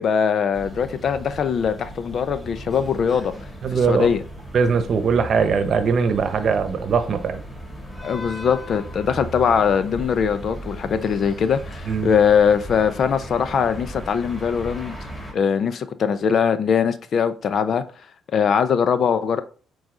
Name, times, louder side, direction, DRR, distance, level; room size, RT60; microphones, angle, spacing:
voice 1, 0.0-3.3 3.7-4.2 8.0-15.0 15.3-17.8 18.3-19.4, left 7 dB, 55° left, 0.7 m, -21 dB
sound 1, 0.5-15.3, right 1 dB, 15° left, 2.9 m, -37 dB
voice 2, 3.6-4.1 4.5-7.4 11.9-12.1, right 5 dB, 55° right, 0.9 m, -21 dB
7.8 x 4.0 x 3.8 m
cardioid pair, 90°, 0 cm